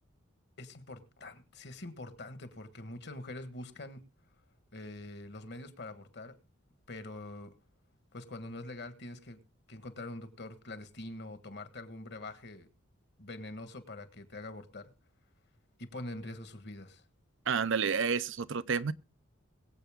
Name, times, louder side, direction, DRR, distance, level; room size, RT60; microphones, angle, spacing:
voice 1, 0.6-4.0 4.7-6.3 6.9-7.5 8.1-9.4 9.7-12.7 13.2-14.9 15.8-17.0, left 2 dB, 50° left, 1.4 m, -44 dB
voice 2, 17.5-18.9, right 6 dB, 60° right, 0.5 m, -30 dB
22.5 x 8.0 x 3.6 m
head